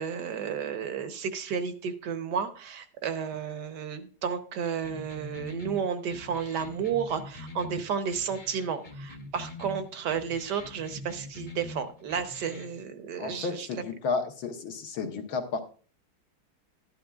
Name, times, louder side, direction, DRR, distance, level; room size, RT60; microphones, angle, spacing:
voice 1, 0.0-13.8, right 7 dB, 60° right, 10 dB, 1.3 m, -32 dB
sound 1, 4.8-12.8, left 2 dB, 35° left, 0.7 m, -44 dB
voice 2, 13.2-15.6, left 4 dB, 75° left, 3 dB, 1.9 m, -32 dB
12.0 x 11.5 x 2.3 m, 0.40 s
omnidirectional pair, 2.3 m